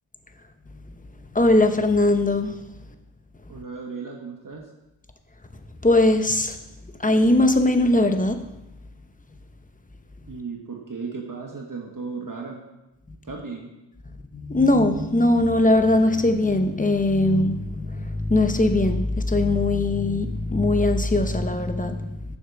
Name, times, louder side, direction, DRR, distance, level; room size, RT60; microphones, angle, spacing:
voice 1, 1.3-2.7 5.8-6.6 6.8-8.4 13.1-13.2 14.3-22.4, left 2 dB, 20° left, 0.8 m, -20 dB
voice 2, 3.5-4.7 10.3-12.6 13.2-13.7, right 4 dB, 45° right, 1.4 m, -35 dB
7.3 x 6.5 x 6.0 m
cardioid pair, 75°, 45 cm